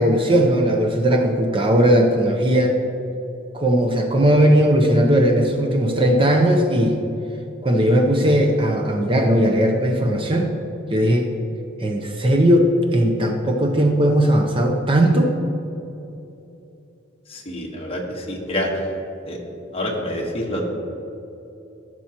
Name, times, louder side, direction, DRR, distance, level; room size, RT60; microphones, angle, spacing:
voice 1, 0.0-2.8 3.5-7.0 7.6-10.5 10.9-11.3 11.8-15.3, equal, 25° right, 3 dB, 0.6 m, -18 dB
voice 2, 17.3-18.8 19.3-19.4 19.7-20.6, left 1 dB, 30° left, -1 dB, 1.3 m, -27 dB
15.0 x 6.1 x 2.9 m, 2.9 s
head